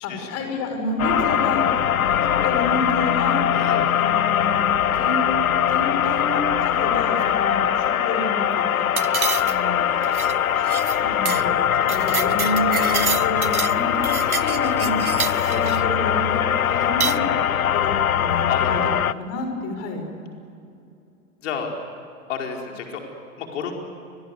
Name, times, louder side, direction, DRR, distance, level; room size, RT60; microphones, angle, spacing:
voice 1, 0.0-1.7 2.2-3.4 3.9-4.7 5.0-5.3 5.7-8.9 9.4-9.8 10.5-16.4 16.7-17.2 17.7-18.8 19.2-20.1, left 2 dB, 35° left, 5 dB, 6.4 m, -29 dB
sound 1, 1.0-19.1, left 9 dB, 80° left, 0.7 m, -21 dB
sound 2, 9.0-9.7 10.0-10.3 10.7-11.0 11.3-11.4 11.7-13.8 14.0-15.8 16.8-17.2, right 7 dB, 90° right, 0.7 m, -28 dB
voice 2, 18.5-19.0 21.4-21.7 22.3-23.0 23.4-23.8, left 7 dB, 55° left, 1 dB, 4.9 m, -30 dB
30.0 x 23.0 x 8.3 m, 2.6 s
figure-of-eight pair, 100°, 42 cm